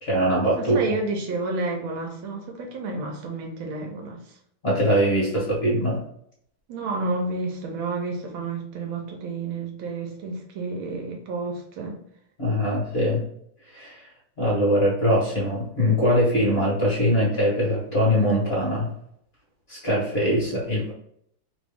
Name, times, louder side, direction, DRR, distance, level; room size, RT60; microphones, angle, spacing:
voice 1, 0.0-0.8 4.6-6.0 12.4-13.2 13.7-14.1 14.4-18.9 19.7-20.9, equal, 35° left, -5 dB, 1.3 m, -22 dB
voice 2, 0.6-4.2 5.3-5.4 6.7-12.0, right 3 dB, 80° right, 2 dB, 1.5 m, -30 dB
3.4 x 3.0 x 3.4 m, 0.70 s
omnidirectional pair, 2.2 m